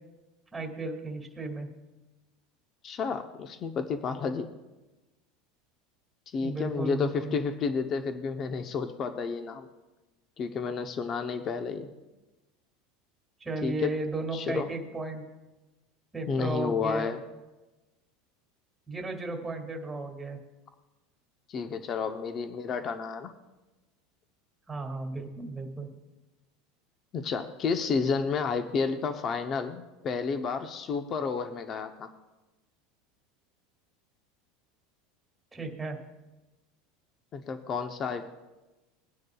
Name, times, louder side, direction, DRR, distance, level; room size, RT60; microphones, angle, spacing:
voice 1, 0.5-1.7 6.4-7.4 13.4-15.3 16.1-17.2 18.9-20.4 24.7-25.9 35.5-36.0, right 3 dB, 10° right, 2 dB, 2.1 m, -34 dB
voice 2, 2.8-4.5 6.3-9.7 10.4-11.9 13.6-14.0 14.3-14.7 16.3-17.2 21.5-23.3 27.1-32.1 37.3-38.3, left 5 dB, 30° left, 7 dB, 0.7 m, -31 dB
21.0 x 9.5 x 2.3 m, 1.1 s
supercardioid pair, 145°, 0 cm